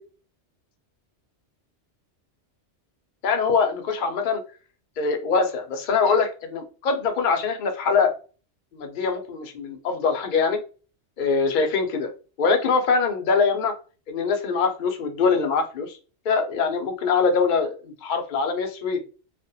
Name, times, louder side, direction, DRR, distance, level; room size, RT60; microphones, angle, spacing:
voice 1, 3.2-4.4 5.0-8.1 8.7-10.6 11.2-12.1 12.4-13.7 14.1-16.0 16.3-19.0, left 5 dB, 55° left, 5 dB, 0.6 m, -23 dB
2.4 x 2.1 x 2.6 m, 0.35 s
omnidirectional pair, 1.2 m